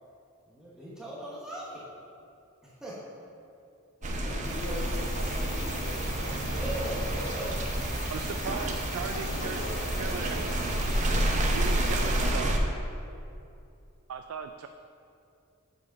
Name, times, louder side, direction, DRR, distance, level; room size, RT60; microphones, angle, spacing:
voice 1, 0.5-1.9 2.6-3.0 4.0-5.4 6.4-7.6, right 1 dB, 5° right, -7 dB, 1.1 m, -40 dB
voice 2, 4.0-7.2 9.1-12.4, left 1 dB, 75° left, -2 dB, 1.4 m, -43 dB
sound 1, 4.0-12.6, right 1 dB, 35° right, 0.6 m, -29 dB
sound 2, 4.4-12.3, left 2 dB, 20° left, 0.6 m, -41 dB
voice 3, 8.1-9.6 10.0-10.5 11.3-12.6 14.1-14.7, right 6 dB, 75° right, 7 dB, 0.3 m, -38 dB
7.0 x 5.0 x 5.3 m, 2.7 s
head